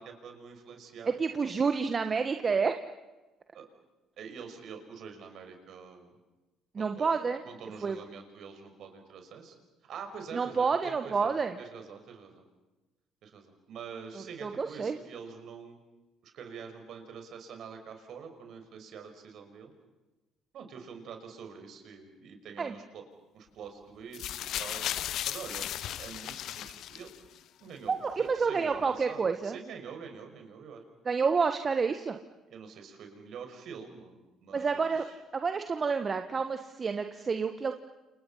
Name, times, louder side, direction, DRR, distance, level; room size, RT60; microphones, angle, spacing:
voice 1, 0.0-1.1 3.5-3.7 4.2-6.2 6.7-9.6 9.8-12.4 13.2-15.8 16.2-19.7 20.5-23.0 23.3-24.8 25.2-27.1 27.6-30.8 32.5-35.1, right 6 dB, 60° right, 5 dB, 5.9 m, -46 dB
voice 2, 1.1-2.7 6.7-7.4 7.8-8.0 10.3-11.5 14.1-15.0 22.6-22.7 27.9-29.6 31.0-32.2 34.5-35.0 35.3-37.7, right 5 dB, 35° right, 7 dB, 1.6 m, -29 dB
sound 1, 24.1-27.4 28.3-28.4, left 12 dB, 60° left, 0.9 m, -36 dB
30.0 x 28.5 x 5.8 m, 1.1 s
hypercardioid pair, 55°, 0 cm